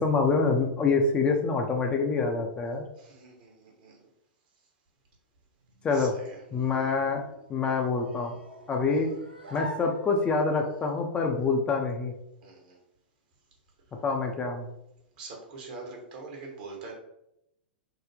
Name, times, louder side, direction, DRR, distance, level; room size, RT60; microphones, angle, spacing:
voice 1, 0.0-2.8 5.8-6.1 6.5-7.2 7.5-8.4 8.7-9.1 9.5-12.1 14.0-14.7, left 4 dB, 20° left, 2 dB, 0.4 m, -26 dB
voice 2, 3.0-4.1 5.9-6.4 8.9-9.0 12.4-12.8 15.2-16.9, right 3 dB, 50° right, 0 dB, 1.0 m, -44 dB
sound 1, 5.6-10.6, equal, 80° right, 0.8 m, -46 dB
3.9 x 2.1 x 3.2 m, 0.81 s
figure-of-eight pair, 100°, 6 cm